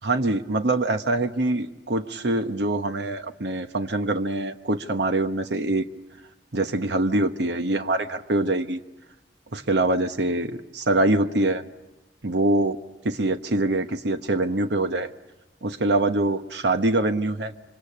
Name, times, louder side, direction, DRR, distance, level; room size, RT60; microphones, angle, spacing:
voice 1, 0.0-5.8 6.5-8.8 9.5-11.6 12.2-12.8 13.0-15.1 15.6-17.5, right 2 dB, 70° right, 9 dB, 1.0 m, -24 dB
27.5 x 25.5 x 8.5 m, 1.0 s
head